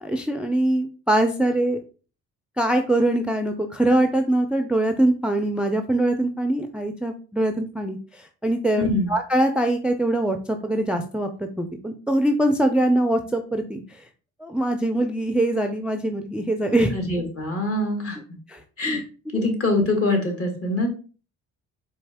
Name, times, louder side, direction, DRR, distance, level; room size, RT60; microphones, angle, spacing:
voice 1, 0.0-1.8 2.6-14.0 14.4-16.9 18.5-19.0 19.3-19.5, right 1 dB, 5° right, 6 dB, 0.3 m, -23 dB
voice 2, 8.8-9.1 16.9-18.2 18.8-19.0 19.3-20.9, left 2 dB, 50° left, 3 dB, 1.5 m, -24 dB
4.2 x 2.8 x 3.4 m, 0.37 s
cardioid pair, 90°, 30 cm